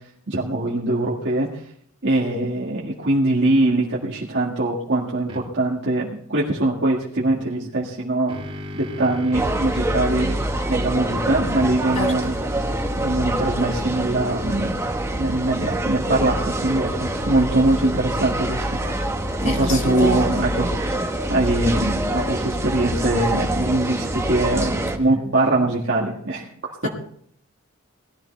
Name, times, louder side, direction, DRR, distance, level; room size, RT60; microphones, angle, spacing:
voice 1, 0.3-1.6 2.0-8.4 8.7-10.4 10.7-12.3 13.0-14.8 15.1-18.8 19.4-21.0 21.3-26.5 26.8-26.9, right 2 dB, 55° right, 2.0 m, -22 dB
sound 1, 5.3-5.4 7.8-9.6 10.1-13.5, left 1 dB, 30° right, 2.9 m, -39 dB
sound 2, 9.3-25.0, right 1 dB, 15° right, 1.3 m, -25 dB
voice 2, 19.4-20.3 26.8-26.9, left 1 dB, 35° left, 2.3 m, -27 dB
18.5 x 13.5 x 3.4 m
head